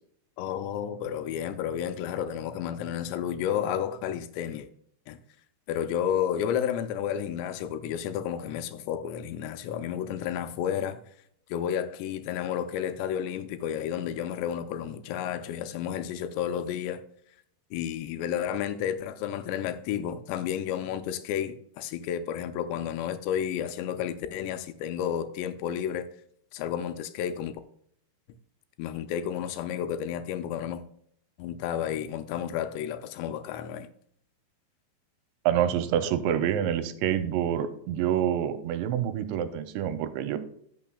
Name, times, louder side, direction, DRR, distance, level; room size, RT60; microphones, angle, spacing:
voice 1, 0.4-4.7 5.1-5.2 5.7-11.0 11.5-17.0 17.7-26.1 26.5-27.6 28.8-30.8 31.4-33.9, left 9 dB, 85° left, 2.7 m, -31 dB
voice 2, 35.5-40.4, right 10 dB, 85° right, 2.9 m, -27 dB
15.0 x 5.9 x 2.3 m
omnidirectional pair, 5.1 m